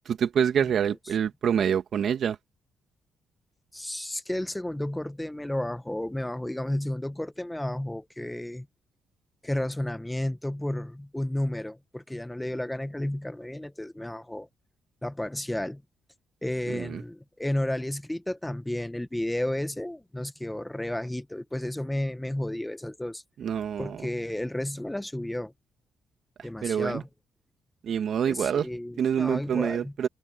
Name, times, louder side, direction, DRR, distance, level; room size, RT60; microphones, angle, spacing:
voice 1, 0.1-2.4 16.7-17.0 23.4-24.1 26.6-27.0 27.8-28.7 29.0-30.1, right 8 dB, 60° right, 2.1 m, -26 dB
voice 2, 3.7-8.7 9.4-14.5 15.0-15.8 16.4-23.2 23.8-25.5 26.4-27.1 28.3-29.9, left 1 dB, 5° left, 1.1 m, -32 dB
open air
cardioid pair, 90°, 0 cm